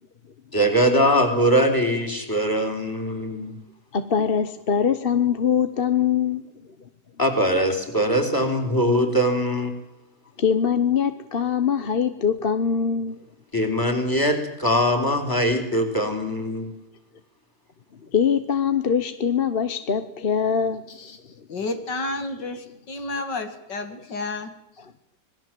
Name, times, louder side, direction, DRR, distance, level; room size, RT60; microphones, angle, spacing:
voice 1, 0.5-3.6 7.2-9.7 13.5-16.7, equal, 10° left, 6 dB, 4.2 m, -22 dB
voice 2, 3.9-6.4 10.4-13.2 18.1-20.8, left 7 dB, 40° left, 11 dB, 1.1 m, -22 dB
voice 3, 21.5-24.5, left 2 dB, 85° left, 8 dB, 2.9 m, -31 dB
26.5 x 20.5 x 7.7 m, 0.81 s
omnidirectional pair, 1.8 m